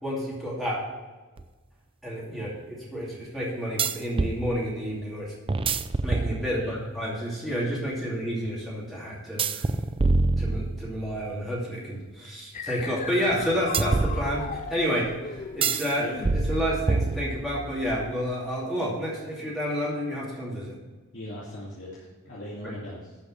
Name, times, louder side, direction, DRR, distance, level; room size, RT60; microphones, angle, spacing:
voice 1, 0.0-0.9 2.0-5.3 6.0-9.7 10.4-16.1 16.3-20.7 22.6-22.7, equal, ahead, -6 dB, 2.6 m, -30 dB
sound 1, 1.4-1.5 3.8-4.4 5.5-6.8 9.4-11.1 13.7-14.7 15.6-15.9 16.2-17.6, right 3 dB, 25° right, 0.4 m, -26 dB
voice 2, 2.3-2.6 6.5-6.8 9.6-10.0 13.4-13.7 15.8-16.1 21.1-23.2, left 1 dB, 55° left, -7 dB, 2.4 m, -41 dB
sound 2, 12.5-18.3, left 5 dB, 35° left, 0.5 m, -38 dB
12.5 x 5.3 x 5.9 m, 1.3 s
head